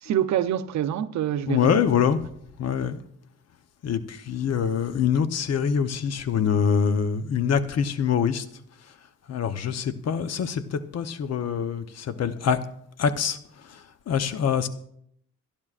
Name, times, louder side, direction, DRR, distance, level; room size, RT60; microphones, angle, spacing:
voice 1, 0.0-2.0, right 10 dB, 65° right, 0.7 m, -26 dB
voice 2, 1.5-2.2 2.6-3.0 3.8-8.4 9.3-12.6 13.0-13.4 13.7-14.7, left 7 dB, 55° left, 0.9 m, -24 dB
26.0 x 10.5 x 2.5 m
cardioid pair, 90°, 30 cm